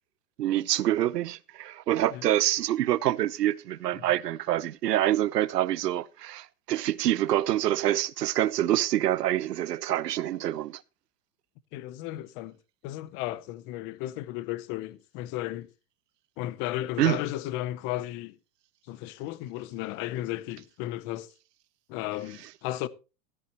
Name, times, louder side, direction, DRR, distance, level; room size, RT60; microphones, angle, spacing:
voice 1, 0.4-10.8 17.0-17.2, right 13 dB, 90° right, 0.9 m, -26 dB
voice 2, 11.7-12.6 12.8-15.7 16.4-18.4 18.9-21.3 21.9-22.9, left 15 dB, 25° left, 0.6 m, -34 dB
13.5 x 13.0 x 2.9 m
hypercardioid pair, 145°, 47 cm